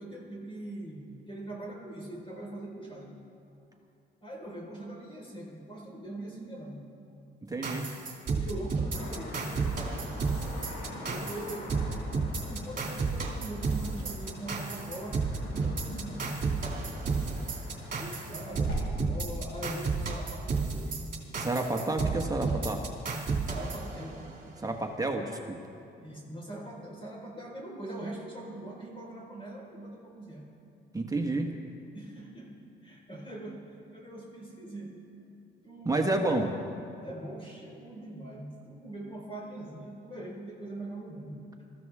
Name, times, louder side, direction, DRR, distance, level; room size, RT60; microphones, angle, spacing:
voice 1, 0.0-3.1 4.2-6.8 8.3-9.5 11.1-11.9 12.2-16.3 18.0-21.1 23.5-24.2 26.0-30.5 31.9-32.5 32.8-33.6 33.9-35.0 35.6-36.4 37.0-41.4, right 1 dB, 25° left, -2 dB, 4.6 m, -42 dB
voice 2, 7.4-7.9 21.4-22.9 24.6-25.6 30.9-31.5 35.8-36.5, right 2 dB, 15° right, 2 dB, 1.4 m, -30 dB
sound 1, 7.6-24.5, right 4 dB, 45° right, 2.7 m, -32 dB
Car passing by / Traffic noise roadway noise, 8.9-18.8, left 1 dB, 85° left, 3.9 m, -43 dB
22.0 x 14.5 x 3.6 m, 2.6 s
cardioid pair, 90°, 20 cm